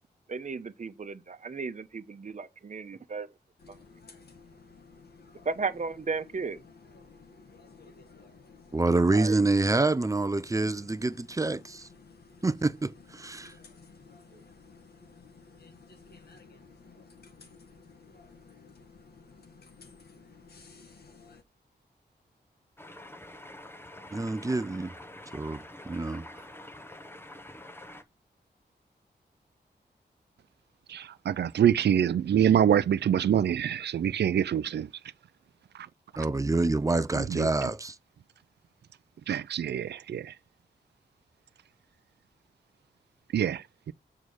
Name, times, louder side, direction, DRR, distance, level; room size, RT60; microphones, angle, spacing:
voice 1, 0.3-3.3 3.7-3.8 5.4-6.6 9.1-9.4 14.3-14.4, right 4 dB, 45° right, 1.0 m, -35 dB
sound 1, 3.6-21.4, left 4 dB, 65° left, 1.8 m, -54 dB
voice 2, 8.7-11.9 12.4-13.5 24.1-24.9 25.3-26.2 36.2-38.0, right 2 dB, 20° right, 0.5 m, -27 dB
sound 2, 22.8-28.0, left 1 dB, 15° left, 0.9 m, -46 dB
voice 3, 30.9-34.9 35.7-35.9 37.1-37.5 39.3-40.3 43.3-43.9, right 9 dB, 75° right, 0.4 m, -25 dB
7.4 x 4.8 x 6.3 m
wide cardioid pair, 125°, 18 cm